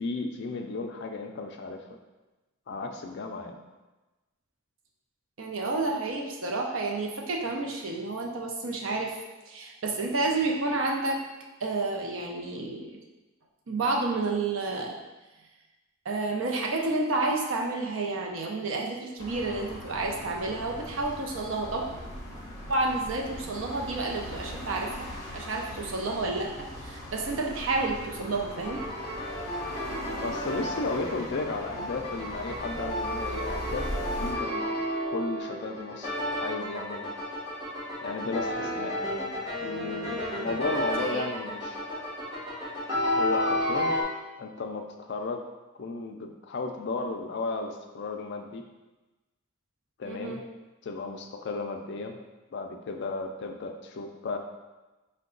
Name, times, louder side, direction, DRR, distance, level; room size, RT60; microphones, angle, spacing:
voice 1, 0.0-2.0 2.7-3.6 30.2-34.6 35.1-37.1 38.0-39.0 39.6-41.8 43.1-43.9 44.4-45.4 45.8-48.6 50.0-50.4 50.8-52.2 52.5-54.4, left 3 dB, 55° left, 4 dB, 0.4 m, -34 dB
voice 2, 5.4-9.2 9.5-11.2 11.6-12.9 13.7-15.0 16.0-21.9 22.7-25.1 25.3-26.5 26.8-28.8 41.0-41.2 50.1-50.4, right 3 dB, 65° right, 0 dB, 0.6 m, -30 dB
sound 1, 19.2-34.3, equal, 15° left, 0.6 m, -40 dB
sound 2, 28.6-44.0, left 1 dB, 15° right, 1.5 m, -32 dB
4.5 x 2.2 x 3.8 m, 1.1 s
head